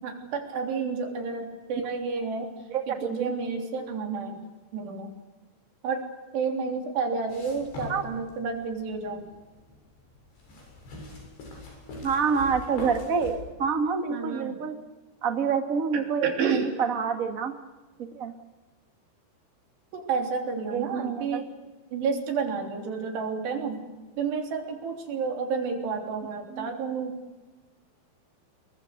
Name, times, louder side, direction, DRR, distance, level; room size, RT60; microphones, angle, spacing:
voice 1, 0.0-2.5 2.9-4.4 4.7-5.1 5.8-9.3 14.1-14.5 16.2-16.7 19.9-21.5 21.9-23.8 24.2-27.2, right 5 dB, 80° right, 3 dB, 5.5 m, -30 dB
voice 2, 2.7-3.3 7.9-8.0 12.0-14.8 15.2-17.5 18.0-18.3 20.7-21.4 26.5-26.7, right 6 dB, 55° right, 6 dB, 0.9 m, -27 dB
sound 1, 7.3-13.3, left 2 dB, 75° left, 9.3 m, -41 dB
27.5 x 23.0 x 6.6 m, 1.2 s
omnidirectional pair, 4.8 m